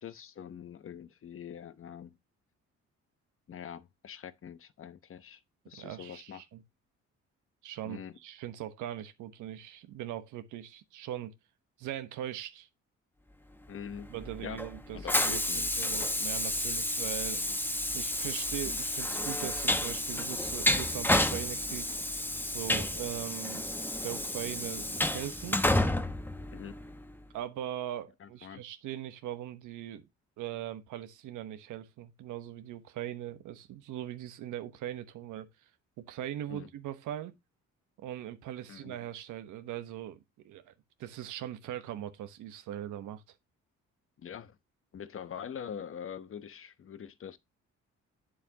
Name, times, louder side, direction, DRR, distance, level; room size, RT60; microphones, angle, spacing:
voice 1, 0.0-2.1 3.5-5.4 5.7-6.4 7.8-8.2 13.7-14.1 14.4-14.6 14.9-16.3 17.3-17.5 26.5-26.8 28.2-28.6 36.5-36.7 38.7-39.0 44.2-44.6 44.9-47.4, left 8 dB, 45° left, 1.0 m, -44 dB
voice 2, 5.8-6.6 7.6-11.3 11.8-12.7 14.1-15.4 15.8-17.4 17.9-21.9 22.5-25.6 27.3-30.1 30.4-35.5 36.0-37.4 38.0-40.2 40.4-40.7 41.0-43.2, right 12 dB, 90° right, 1.1 m, -40 dB
Train, 13.9-27.1, left 1 dB, 5° left, 0.9 m, -31 dB
8.5 x 7.6 x 2.9 m
cardioid pair, 90°, 30 cm